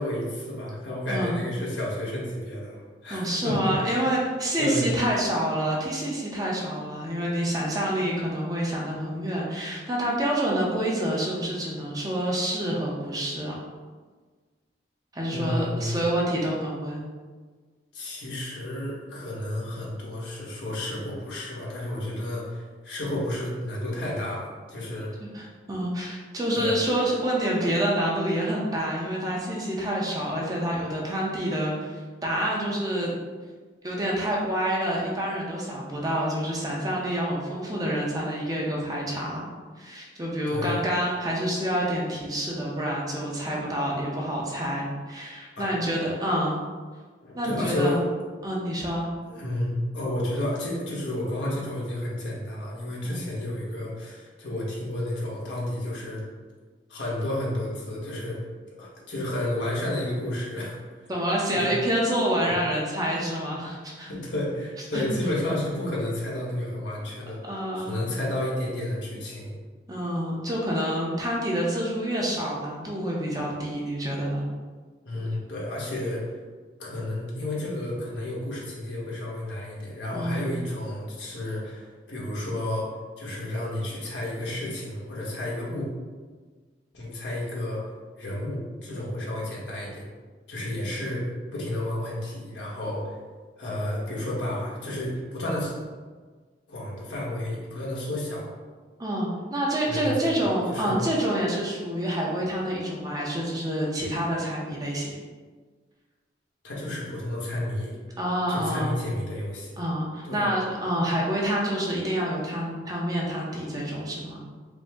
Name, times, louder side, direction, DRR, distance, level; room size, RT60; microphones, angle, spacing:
voice 1, 0.0-3.7 4.6-4.9 15.3-16.0 17.9-25.1 26.5-26.8 40.5-40.8 45.6-45.7 47.2-48.0 49.3-56.2 56.9-58.4 58.8-61.1 61.5-61.8 64.1-67.4 67.7-69.5 75.0-76.2 76.8-82.9 83.2-85.9 86.9-87.8 88.2-90.0 90.5-91.2 91.5-93.2 93.6-95.7 96.7-98.5 99.9-100.9 106.6-108.0 108.5-109.8 110.2-110.5, left 1 dB, 80° left, -5 dB, 1.2 m, -31 dB
voice 2, 3.1-13.5 15.1-17.0 25.2-33.1 33.8-39.4 39.8-46.6 47.3-48.0 48.4-49.1 53.0-53.2 61.1-64.1 64.9-65.0 67.4-67.9 69.9-74.5 80.1-80.5 99.0-105.2 108.2-108.9 109.8-114.4, right 1 dB, 20° right, -4 dB, 0.6 m, -27 dB
5.0 x 2.0 x 3.6 m, 1.4 s
head